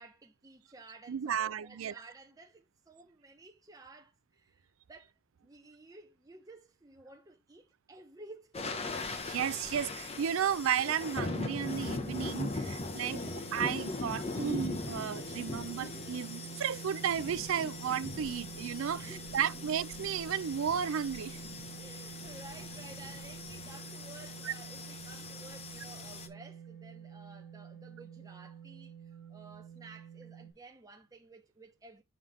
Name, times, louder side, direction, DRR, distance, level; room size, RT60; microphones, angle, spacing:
voice 1, 0.0-5.1 5.4-8.8 12.8-13.4 18.9-19.4 21.8-32.0, right 2 dB, 15° right, 0.7 m, -54 dB
voice 2, 1.1-1.9 9.2-13.2 13.5-21.4 24.4-24.5, right 8 dB, 70° right, 0.4 m, -33 dB
sound 1, 8.5-26.3, left 2 dB, 30° left, 0.8 m, -40 dB
sound 2, 13.0-30.5, right 7 dB, 60° left, 1.7 m, -48 dB
5.7 x 5.6 x 3.2 m
head